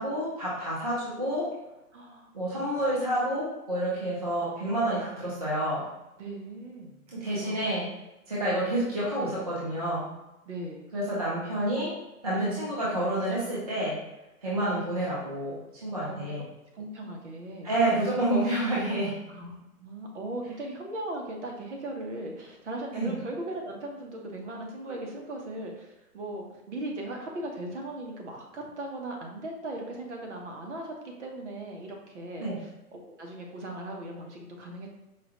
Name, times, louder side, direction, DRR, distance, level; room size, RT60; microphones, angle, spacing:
voice 1, 0.0-1.5 2.3-5.8 7.1-7.9 8.3-10.1 10.9-12.0 12.2-14.0 14.4-16.4 17.6-19.2 22.9-23.1 32.4-32.6, right 1 dB, 25° right, -7 dB, 0.5 m, -29 dB
voice 2, 1.9-2.8 5.1-5.2 6.2-7.8 10.4-10.9 16.0-16.3 16.7-17.7 19.3-19.5 19.8-34.9, right 1 dB, 50° right, 1 dB, 0.9 m, -38 dB
4.8 x 2.3 x 2.9 m, 0.96 s
hypercardioid pair, 155°, 46 cm